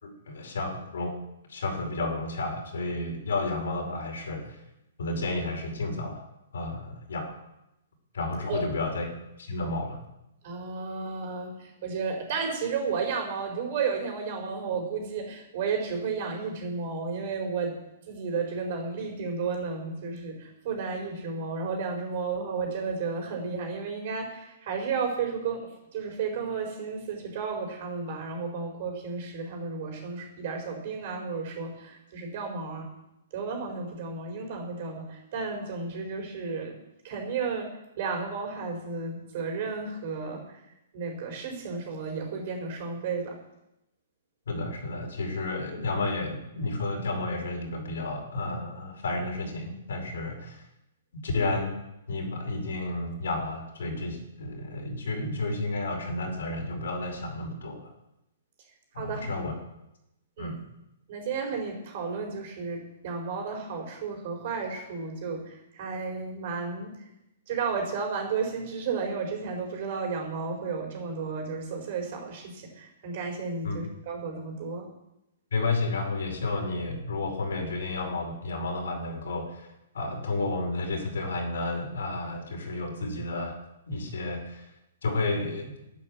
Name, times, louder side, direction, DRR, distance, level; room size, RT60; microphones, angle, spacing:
voice 1, 0.0-1.1 1.5-4.5 5.0-6.2 6.5-7.4 8.1-9.1 9.4-10.0 44.5-50.6 51.2-51.7 52.1-57.9 58.9-59.5 60.4-60.6 73.6-73.8 75.5-79.6 79.9-83.5 83.9-84.6 85.0-85.7, left 2 dB, 80° left, 1 dB, 5.0 m, -31 dB
voice 2, 8.5-9.0 9.6-9.7 10.4-17.8 18.1-32.9 33.3-36.8 37.0-40.6 40.9-43.4 59.0-59.3 60.4-60.5 61.1-67.0 67.5-74.9, right 5 dB, 40° right, 3 dB, 4.4 m, -33 dB
11.0 x 10.5 x 7.4 m, 0.87 s
hypercardioid pair, 165°, 0 cm